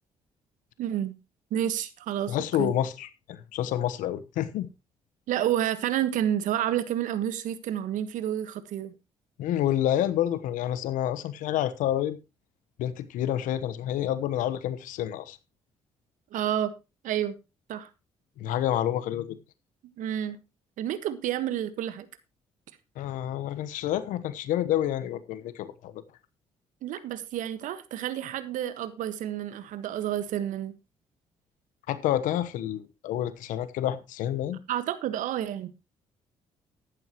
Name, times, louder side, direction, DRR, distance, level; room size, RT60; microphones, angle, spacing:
voice 1, 0.8-1.2 1.5-2.7 5.3-8.9 16.3-16.7 17.0-17.4 17.7-17.9 20.0-20.4 20.8-22.1 26.8-30.7 34.7-35.7, right 11 dB, 70° right, 1.4 m, -30 dB
voice 2, 2.3-4.7 9.4-12.2 12.8-15.4 18.4-19.4 23.0-26.0 31.9-34.6, left 11 dB, 75° left, 1.1 m, -28 dB
14.0 x 11.5 x 3.0 m
hypercardioid pair, 50°, 14 cm